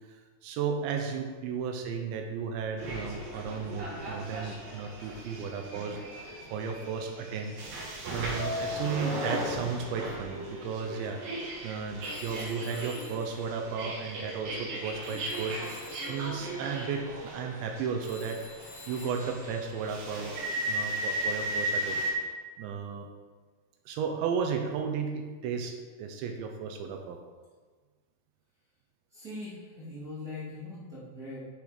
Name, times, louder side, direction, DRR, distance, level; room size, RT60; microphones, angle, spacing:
voice 1, 0.1-7.6 8.1-11.3 11.6-18.4 18.9-20.4 20.7-22.3 22.6-23.1 23.9-27.2, right 6 dB, 80° right, 4 dB, 3.0 m, -34 dB
sound 1, 2.8-22.1, right 1 dB, 60° right, 2.7 m, -36 dB
Telephone, 12.0-14.8 15.0-20.3, left 5 dB, 75° left, 1.4 m, -52 dB
voice 2, 29.1-31.4, left 2 dB, 30° right, -10 dB, 2.0 m, -41 dB
8.0 x 6.9 x 5.0 m, 1.4 s
omnidirectional pair, 5.3 m